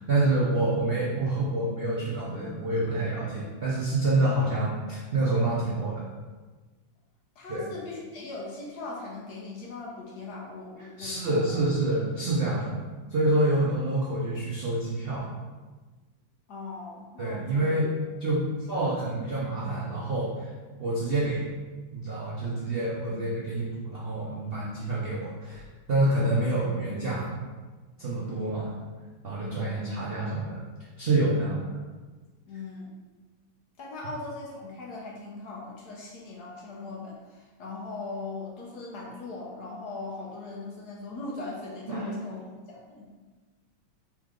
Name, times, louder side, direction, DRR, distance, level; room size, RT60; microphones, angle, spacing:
voice 1, 0.0-6.1 7.5-7.6 11.0-12.8 13.1-15.3 17.2-17.9 18.2-20.5 20.8-21.4 21.9-25.6 25.9-27.3 28.0-28.7 29.2-30.5 31.0-31.7 41.9-42.1, right 2 dB, 80° right, -7 dB, 0.5 m, -27 dB
voice 2, 7.4-11.6 13.5-13.6 16.5-17.7 23.1-23.2 26.3-26.4 28.5-28.6 29.4-29.8 32.5-33.0 33.8-42.4 42.7-43.1, left 3 dB, 60° left, -3 dB, 1.2 m, -40 dB
4.4 x 3.2 x 3.7 m, 1.3 s
omnidirectional pair, 2.2 m